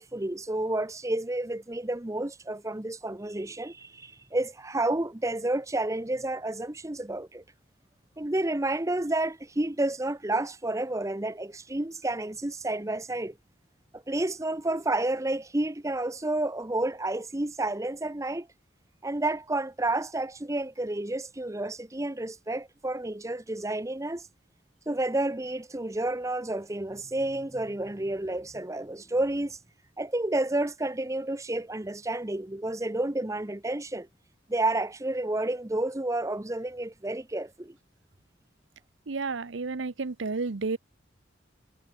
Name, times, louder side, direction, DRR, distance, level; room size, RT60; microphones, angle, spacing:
voice 1, 0.0-7.4 8.2-13.3 13.9-18.5 19.0-24.3 24.9-29.6 30.0-34.1 34.5-37.7, right 2 dB, 15° right, 0.9 m, -30 dB
voice 2, 39.1-40.8, right 4 dB, 85° right, 0.8 m, -31 dB
head